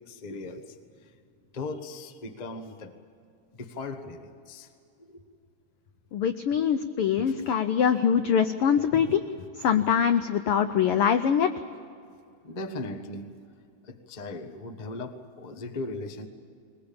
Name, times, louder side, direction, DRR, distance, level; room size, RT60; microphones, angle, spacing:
voice 1, 0.1-1.2 1.5-3.0 3.5-4.7 5.0-5.2 7.3-7.5 8.2-9.1 9.4-9.8 12.4-13.3 13.8-16.3, left 2 dB, 65° left, 6 dB, 0.4 m, -39 dB
voice 2, 6.1-9.2 9.6-11.5, left 8 dB, 90° left, 9 dB, 1.2 m, -23 dB
21.0 x 20.5 x 8.7 m, 2.4 s
omnidirectional pair, 3.4 m